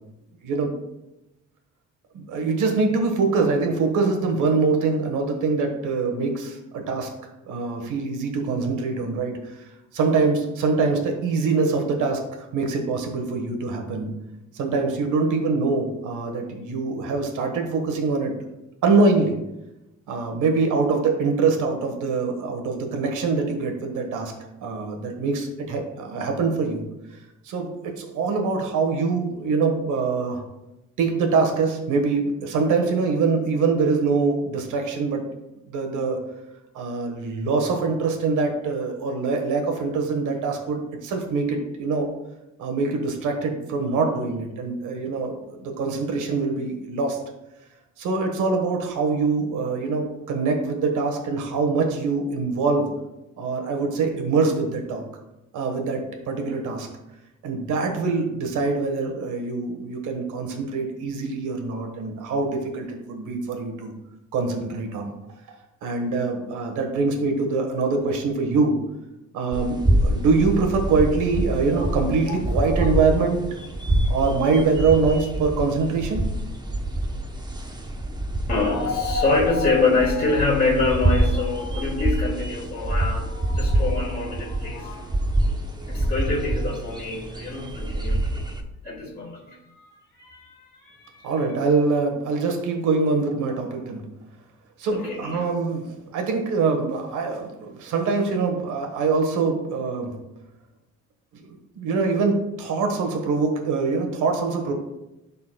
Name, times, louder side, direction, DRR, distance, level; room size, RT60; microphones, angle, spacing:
voice 1, 2.1-7.1 7.5-9.5 9.9-12.2 12.5-14.1 14.5-18.3 18.8-19.4 20.1-24.3 24.6-26.8 27.4-30.4 31.0-35.2 35.7-36.2 36.7-42.1 42.6-47.2 48.0-52.9 53.4-55.0 55.5-56.9 57.4-63.9 64.3-65.1 65.8-68.8 69.3-73.4 74.1-76.2 91.2-94.0 94.8-100.1 101.3-101.5 101.8-104.7, right 4 dB, 85° right, 3 dB, 1.4 m, -24 dB
sound 1, 69.5-88.6, right 1 dB, 15° right, 0.8 m, -26 dB
voice 2, 72.3-72.9 78.5-85.3 85.9-88.3 88.8-91.3 94.9-95.5, left 3 dB, 30° left, -7 dB, 2.1 m, -26 dB
12.5 x 4.3 x 2.2 m, 0.95 s
cardioid pair, 90°, 30 cm